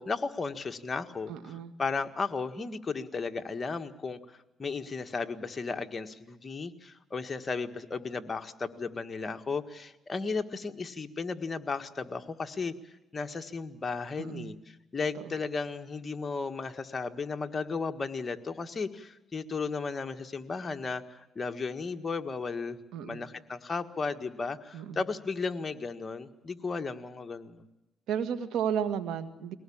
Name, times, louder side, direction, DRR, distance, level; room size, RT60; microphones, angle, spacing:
voice 1, 0.0-1.3 1.8-12.7 13.1-14.5 14.9-22.8 23.0-27.7, left 4 dB, 30° left, 6 dB, 1.7 m, -35 dB
voice 2, 1.3-1.7 14.2-14.5 15.1-15.3 22.9-23.2 24.7-25.0 28.1-29.5, right 8 dB, 85° right, 10 dB, 1.9 m, -33 dB
22.5 x 18.5 x 8.7 m, 0.95 s
cardioid pair, 90°, 0 cm